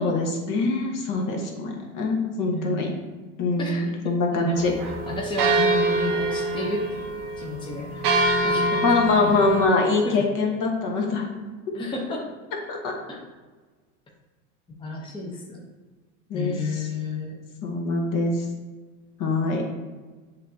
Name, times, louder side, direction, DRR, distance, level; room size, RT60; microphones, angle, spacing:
voice 1, 0.0-2.9 3.4-4.7 8.8-11.3 12.7-12.9 16.3-16.9 17.6-18.4 19.2-19.6, left 3 dB, 45° left, 1 dB, 1.1 m, -24 dB
voice 2, 2.4-2.8 3.6-4.7 5.1-8.0 8.4-9.0 9.2-9.4 10.0-10.2 11.7-12.3 13.1-13.2 14.8-15.6 16.3-17.4, left 3 dB, 10° left, -3 dB, 0.7 m, -32 dB
sound 1, 4.5-9.7, right 2 dB, 90° right, 0.8 m, -25 dB
7.1 x 2.8 x 2.7 m, 1.3 s
hypercardioid pair, 95°, 45 cm